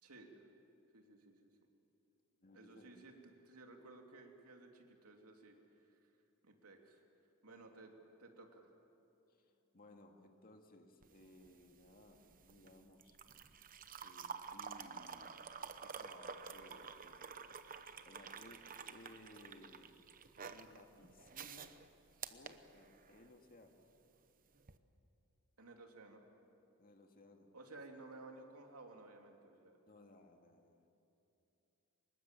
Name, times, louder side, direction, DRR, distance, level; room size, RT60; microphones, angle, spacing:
voice 1, 0.0-0.5 0.9-1.5 2.5-3.1 3.4-5.6 6.4-7.0 7.4-7.9 8.2-8.8 25.6-26.2 27.5-29.8, right 2 dB, 75° right, 2 dB, 3.0 m, -56 dB
voice 2, 2.4-3.0 7.7-7.8 9.3-13.2 14.0-17.4 18.1-19.9 20.5-21.7 22.3-23.8 26.8-27.5 29.9-30.8, left 1 dB, 40° left, 4 dB, 2.1 m, -61 dB
sound 1, 11.0-23.3 24.6-24.8, right 6 dB, 40° right, 0.9 m, -50 dB
24.5 x 21.0 x 7.6 m, 2.8 s
head